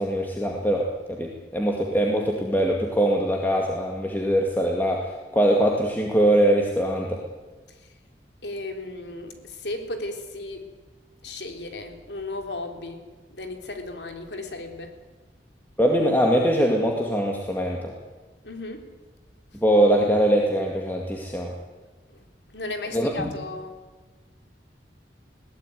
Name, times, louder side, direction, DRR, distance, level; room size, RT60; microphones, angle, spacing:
voice 1, 0.0-7.2 15.8-17.9 19.6-21.5 22.9-23.3, right 1 dB, 10° left, 0 dB, 2.2 m, -22 dB
voice 2, 8.4-9.3 9.6-10.6 11.2-13.0 13.4-14.9 18.4-18.8 22.5-23.7, left 2 dB, 75° left, 5 dB, 3.3 m, -35 dB
21.5 x 17.0 x 9.4 m, 1.3 s
head